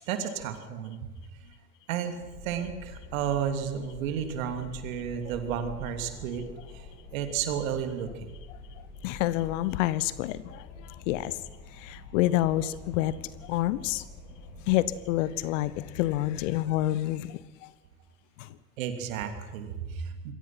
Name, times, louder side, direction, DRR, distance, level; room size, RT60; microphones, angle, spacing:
voice 1, 0.1-1.1 1.9-2.2 2.4-6.5 6.7-6.8 7.1-8.3 18.8-20.3, right 8 dB, 60° right, 7 dB, 3.0 m, -32 dB
Wind, 2.2-17.5, left 3 dB, 65° left, 6.5 m, -47 dB
voice 2, 9.0-11.4 11.8-13.2 13.4-14.0 14.7-17.7 18.4-18.5, left 15 dB, 50° left, 18 dB, 1.1 m, -28 dB
27.0 x 22.0 x 6.0 m, 1.1 s
figure-of-eight pair, 80°, 47 cm